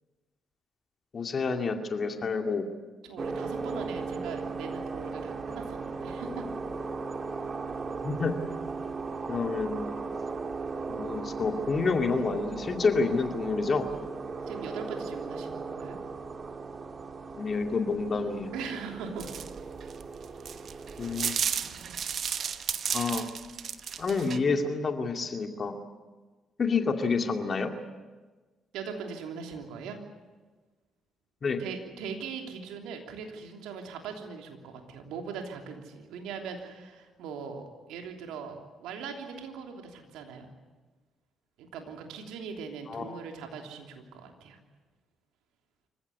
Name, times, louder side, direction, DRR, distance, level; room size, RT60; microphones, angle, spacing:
voice 1, 1.1-2.6 8.0-8.5 9.3-10.0 10.9-13.8 17.4-18.5 21.0-21.4 22.9-23.3 24.0-25.7 26.6-27.7 31.4-31.6 42.9-43.1, left 4 dB, 45° left, 4 dB, 2.4 m, -28 dB
voice 2, 3.0-6.4 14.5-16.0 18.5-19.3 28.7-30.0 31.6-40.5 41.6-44.6, right 5 dB, 75° right, 3 dB, 3.1 m, -40 dB
sound 1, 3.2-21.3, right 4 dB, 45° right, 2.1 m, -37 dB
sound 2, 19.2-24.4, right 7 dB, 60° right, 1.1 m, -33 dB
26.0 x 15.5 x 9.6 m, 1.3 s
hypercardioid pair, 50°, 0 cm